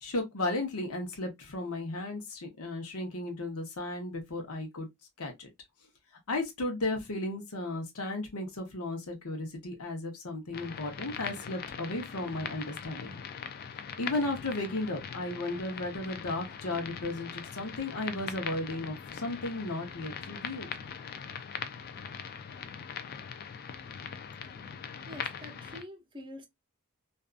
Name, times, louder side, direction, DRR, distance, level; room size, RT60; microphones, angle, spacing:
voice 1, 0.0-4.9 5.2-5.5 6.3-13.2 14.0-20.7, left 2 dB, 80° left, 0.9 m, -35 dB
sound 1, 10.5-25.8, left 7 dB, 45° left, 0.3 m, -41 dB
voice 2, 25.1-26.5, left 1 dB, 20° right, 0.6 m, -46 dB
2.6 x 2.3 x 2.4 m
head